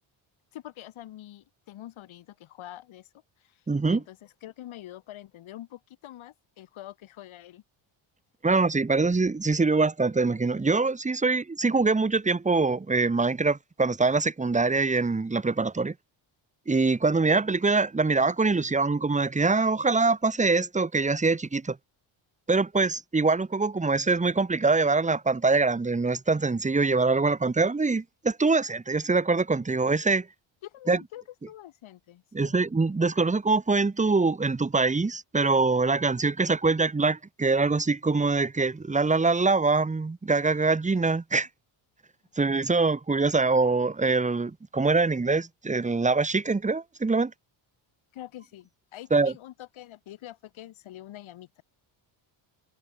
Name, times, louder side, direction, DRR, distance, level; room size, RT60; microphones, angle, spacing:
voice 1, 0.5-3.1 3.4-7.6 30.6-32.6 48.1-51.6, left 13 dB, 75° left, 4.7 m, -45 dB
voice 2, 3.7-4.0 8.4-15.9 16.7-21.8 22.5-30.3 30.9-31.0 32.3-41.5 42.4-47.3 49.1-49.3, right 3 dB, 15° right, 1.8 m, -24 dB
cardioid pair, 140°, 49 cm